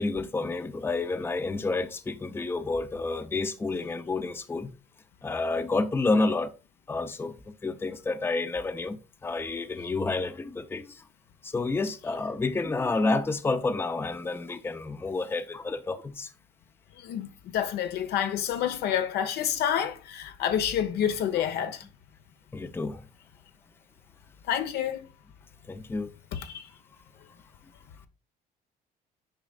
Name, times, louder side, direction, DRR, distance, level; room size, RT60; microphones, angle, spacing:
voice 1, 0.0-4.7 5.2-6.5 6.9-11.0 11.4-16.3 22.5-23.0 25.7-26.1, left 3 dB, 15° left, 0.6 m, -29 dB
voice 2, 17.0-21.8 24.5-25.0 26.3-26.7, left 9 dB, 75° left, 1.0 m, -28 dB
9.0 x 5.1 x 2.4 m
cardioid pair, 110°, 17 cm